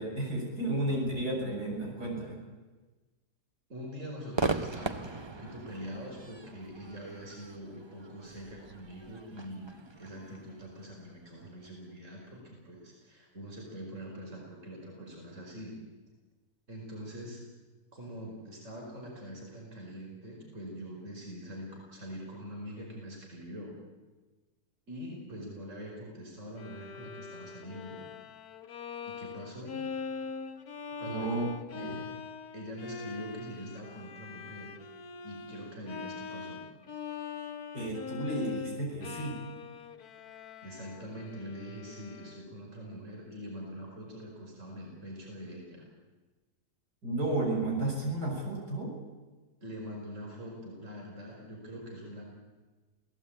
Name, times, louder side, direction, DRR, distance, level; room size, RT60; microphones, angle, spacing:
voice 1, 0.0-2.4 31.1-31.5 31.7-32.0 37.7-39.4 47.0-48.9, right 2 dB, 85° right, -1 dB, 7.6 m, -32 dB
voice 2, 3.7-15.8 16.7-17.4 17.9-23.8 24.9-28.0 29.1-29.8 31.0-31.4 31.8-32.0 32.5-34.8 35.2-36.6 40.6-45.9 49.6-52.2, equal, 50° right, -1 dB, 5.3 m, -44 dB
Crowd / Fireworks, 4.3-11.7, right 3 dB, 20° right, 0.8 m, -39 dB
Bowed string instrument, 26.6-42.7, left 5 dB, 70° left, 1.6 m, -42 dB
28.0 x 17.5 x 8.8 m, 1.3 s
omnidirectional pair, 1.7 m